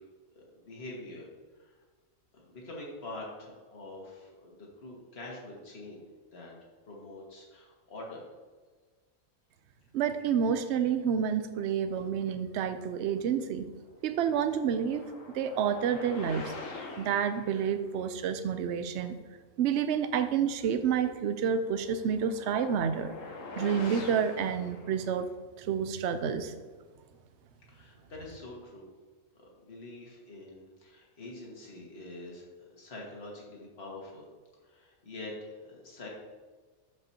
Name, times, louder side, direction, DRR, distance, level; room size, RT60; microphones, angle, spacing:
voice 1, 0.3-1.3 1.6-1.7 2.3-6.0 6.3-8.3 27.7-28.8 29.4-34.3 34.6-36.1, left 2 dB, 45° left, -2 dB, 1.9 m, -45 dB
voice 2, 9.9-13.7 14.0-15.0 15.3-16.5 17.0-19.2 19.6-23.1 23.6-25.3 25.6-26.5, right 7 dB, 65° right, 10 dB, 0.8 m, -29 dB
sound 1, 14.0-17.6 21.5-25.3, left 3 dB, 65° left, 1.4 m, -44 dB
12.5 x 5.4 x 2.8 m, 1.4 s
omnidirectional pair, 1.5 m